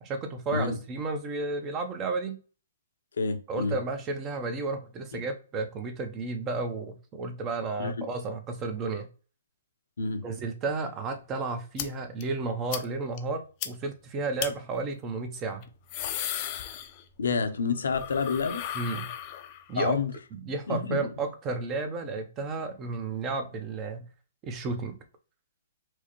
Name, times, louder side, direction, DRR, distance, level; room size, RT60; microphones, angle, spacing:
voice 1, 0.0-2.4 3.5-9.1 10.2-15.7 18.7-19.1 19.7-20.0 20.3-24.1 24.4-25.0, right 3 dB, 25° right, 0.6 m, -32 dB
voice 2, 3.2-3.8 7.8-8.1 10.0-10.2 17.2-18.6 19.8-20.1 20.7-21.1, left 4 dB, 80° left, 0.7 m, -28 dB
sound 1, 11.8-11.9 12.2-12.3 12.7-12.8 13.2-13.3 13.6-13.7 14.4-14.5 15.6-17.3 17.6-19.8, left 11 dB, 35° left, 0.5 m, -35 dB
4.5 x 2.1 x 3.0 m
hypercardioid pair, 145°, 0 cm